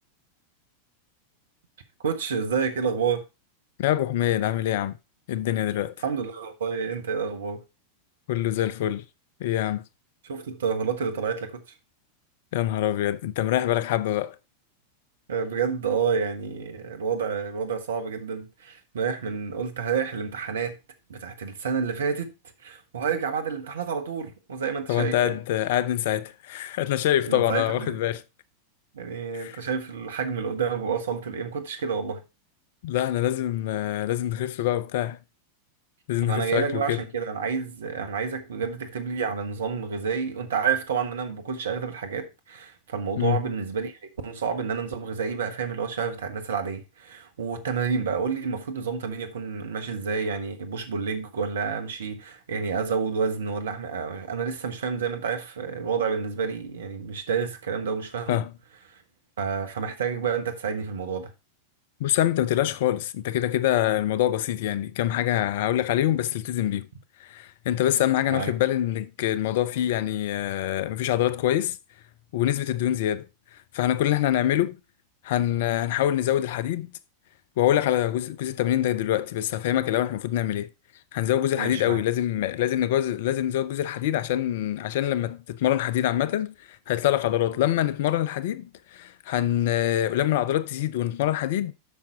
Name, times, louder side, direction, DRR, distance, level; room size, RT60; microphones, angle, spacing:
voice 1, 2.0-3.3 6.0-7.6 10.2-11.6 15.3-20.8 21.1-22.3 22.6-25.4 27.3-28.0 28.9-32.2 36.2-44.0 44.2-58.4 58.9-59.0 59.4-61.3 68.2-68.5 81.5-82.0, right 6 dB, 65° right, 1.4 m, -29 dB
voice 2, 3.8-5.0 5.3-5.9 8.3-9.0 9.4-9.8 12.5-14.3 24.9-28.2 29.3-29.6 32.8-35.2 36.1-37.0 43.2-43.4 58.3-58.5 62.0-66.9 67.2-71.8 72.3-73.3 73.7-74.8 75.2-76.9 77.6-80.7 81.1-86.5 86.9-91.7, left 12 dB, 55° left, 0.6 m, -25 dB
8.4 x 6.0 x 4.5 m
figure-of-eight pair, 90°, 0 cm